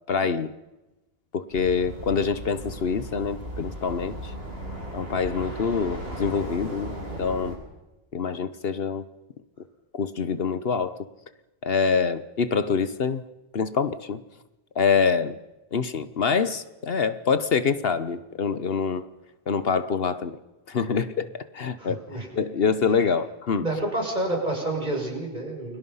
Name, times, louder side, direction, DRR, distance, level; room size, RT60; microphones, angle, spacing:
voice 1, 0.1-0.5 1.3-4.3 4.9-7.6 8.1-9.1 9.9-11.0 11.6-13.2 13.5-14.2 14.8-15.4 15.7-19.0 19.5-20.4 20.7-21.3 21.5-22.0 22.3-23.6, left 5 dB, 65° left, 1.2 m, -25 dB
sound 1, 1.5-7.6, right 1 dB, 65° right, 8.1 m, -36 dB
voice 2, 21.8-22.3 22.9-23.0 23.6-25.8, right 2 dB, 45° right, 6.6 m, -29 dB
29.5 x 23.5 x 5.6 m
omnidirectional pair, 1.1 m